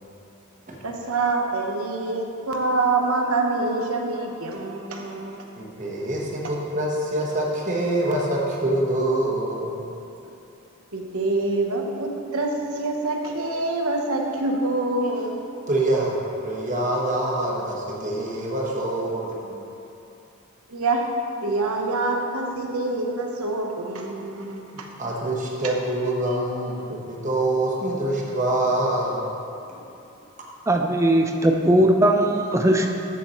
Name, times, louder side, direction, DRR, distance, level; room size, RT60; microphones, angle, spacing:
voice 1, 0.8-5.5 10.9-15.4 20.7-21.1 21.4-24.9 25.6-25.7, right 2 dB, 90° right, 2 dB, 1.1 m, -26 dB
voice 2, 5.6-9.8 15.0-15.2 15.7-16.2 16.4-19.5 25.0-29.3 29.7-29.8, right 1 dB, 35° right, -3 dB, 1.3 m, -25 dB
voice 3, 30.7-32.9, right 1 dB, 15° right, 3 dB, 0.5 m, -19 dB
13.5 x 7.2 x 3.1 m, 2.7 s
head